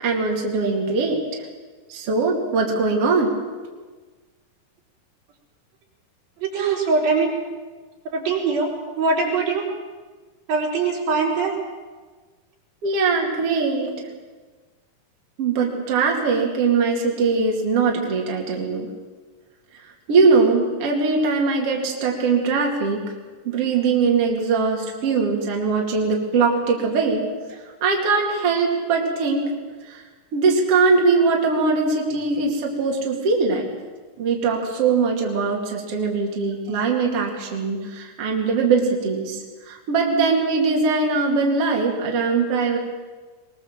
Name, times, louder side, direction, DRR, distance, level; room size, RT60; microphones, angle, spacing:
voice 1, 0.0-1.2 1.9-3.3 12.8-13.9 15.4-18.9 20.1-23.0 23.4-27.2 27.8-29.5 29.9-30.0 30.3-33.7 34.2-39.4 39.7-42.8, right 4 dB, 45° right, -1 dB, 3.2 m, -21 dB
voice 2, 6.4-7.4 8.1-8.7 9.0-9.7 10.5-11.5, right 4 dB, 75° right, -2 dB, 5.8 m, -22 dB
22.0 x 21.0 x 7.4 m, 1.4 s
omnidirectional pair, 4.1 m